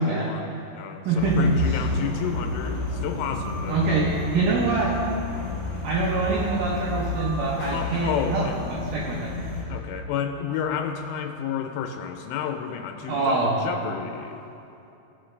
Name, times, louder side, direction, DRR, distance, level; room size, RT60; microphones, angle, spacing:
voice 1, 0.0-3.9 7.7-8.7 9.7-14.4, left 8 dB, 90° left, 5 dB, 3.1 m, -31 dB
voice 2, 1.1-1.8 3.7-4.9 5.8-9.3 13.1-13.6, right 3 dB, 75° right, -4 dB, 2.2 m, -25 dB
sound 1, 1.2-9.6, left 2 dB, 65° left, 1.5 m, -30 dB
sound 2, 3.2-4.0 4.7-5.6 6.6-8.0, right 2 dB, 40° right, 1.8 m, -44 dB
16.0 x 7.8 x 3.2 m, 2.8 s
omnidirectional pair, 5.5 m